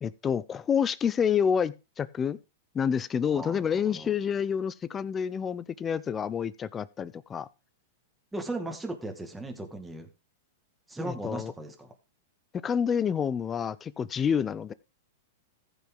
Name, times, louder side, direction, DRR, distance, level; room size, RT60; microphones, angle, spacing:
voice 1, 0.0-2.4 2.7-7.5 11.0-11.5 12.6-14.7, left 7 dB, 20° left, 0.6 m, -28 dB
voice 2, 3.3-4.1 8.3-10.1 10.9-11.9, right 2 dB, 5° right, 2.1 m, -37 dB
15.0 x 5.8 x 3.9 m
hypercardioid pair, 125°, 0 cm